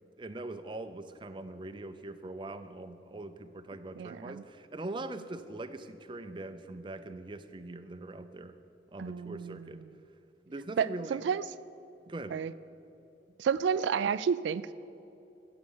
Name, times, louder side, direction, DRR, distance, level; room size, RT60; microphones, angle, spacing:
voice 1, 0.2-8.5 8.9-9.8 10.5-11.2 12.1-12.4, right 2 dB, 25° right, 10 dB, 0.5 m, -42 dB
voice 2, 4.0-4.4 9.0-9.8 10.8-11.4 12.3-12.5 13.4-14.8, right 7 dB, 85° right, 15 dB, 0.3 m, -31 dB
16.0 x 6.9 x 7.1 m, 2.8 s
head